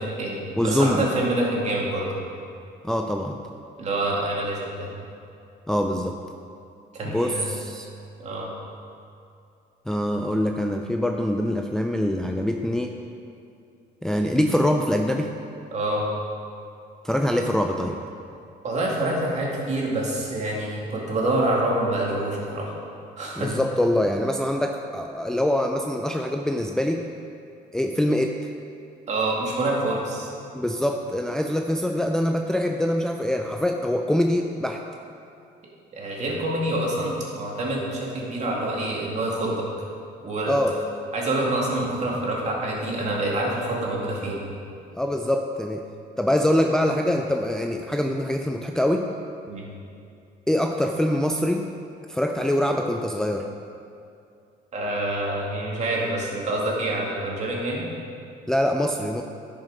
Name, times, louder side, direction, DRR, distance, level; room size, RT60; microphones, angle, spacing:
voice 1, 0.0-2.1 3.8-4.9 6.9-7.4 8.2-8.5 15.7-16.1 18.6-22.7 23.2-23.6 29.1-30.3 35.9-39.7 40.2-40.5 41.1-44.4 49.5-49.7 54.7-57.9, right 1 dB, 45° right, -3 dB, 2.3 m, -26 dB
voice 2, 0.6-1.1 2.8-3.4 5.7-6.2 7.0-7.9 9.9-12.9 14.0-15.3 17.0-18.0 23.4-27.0 27.7-28.5 30.5-34.8 40.5-40.8 44.9-45.8 46.2-49.1 50.5-51.7 52.1-53.5 58.5-59.2, left 1 dB, 5° left, 3 dB, 0.4 m, -24 dB
10.5 x 6.4 x 5.1 m, 2.5 s
cardioid pair, 110°, 17 cm